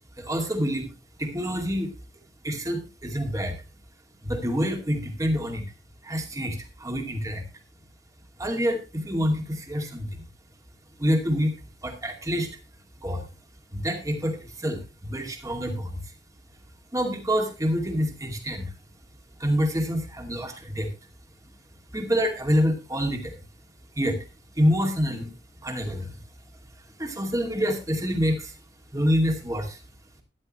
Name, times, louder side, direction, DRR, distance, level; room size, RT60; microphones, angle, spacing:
voice 1, 0.2-0.9 1.2-1.9 2.4-3.6 4.2-5.6 6.0-7.4 8.4-10.2 11.0-11.5 11.8-12.5 13.0-13.3 13.7-16.0 16.9-18.7 19.4-20.9 21.9-23.4 24.0-24.2 24.6-25.3 25.6-26.2 27.0-28.5 28.9-29.8, equal, 20° right, 3 dB, 2.3 m, -27 dB
13.5 x 10.5 x 3.1 m, 0.28 s
head